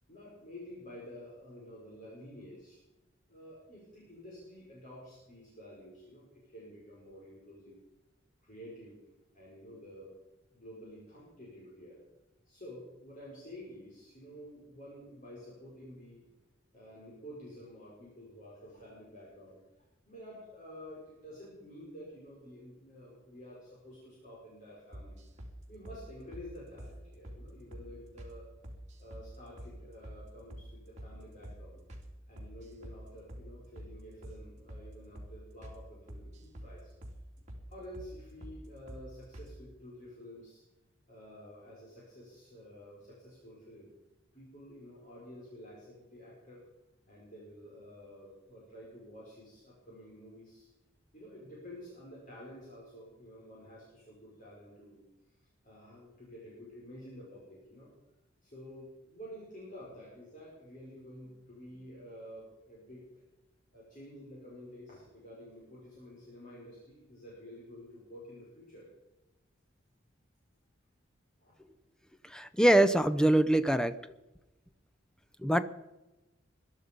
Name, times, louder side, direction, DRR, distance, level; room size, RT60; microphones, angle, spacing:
voice 1, 0.1-2.8 3.3-7.8 8.4-9.0 9.3-10.1 10.5-12.0 12.4-16.3 16.7-19.6 20.0-25.2 25.7-28.5 29.0-31.8 32.3-36.9 37.7-40.6 41.1-43.9 44.3-46.6 47.1-50.7 51.1-55.0 55.6-57.9 58.4-63.2 63.7-68.9 71.4-71.6, equal, 40° left, -6 dB, 5.3 m, -50 dB
sound 1, 24.9-25.5 25.9-26.0 26.3-26.5 26.8-26.9 27.2-27.4 27.7-27.9 28.2-28.3 28.6-29.3 29.6-29.7 30.0-30.2 30.5-30.7 31.0-31.1 31.4-31.6 31.9-32.1 32.4-33.0 33.3-33.5 33.8-33.9 34.2-34.4 34.7-34.9 35.2-35.3 35.6-35.8 36.1-36.7 37.0-37.2 37.5-37.6 37.9-38.1 38.4-38.6 38.9-39.0 39.3-39.5, equal, 35° right, 3.4 m, -46 dB
voice 2, 72.2-73.9 75.4-75.6, right 1 dB, 5° left, 12 dB, 0.6 m, -24 dB
21.5 x 12.0 x 5.3 m, 1.0 s
head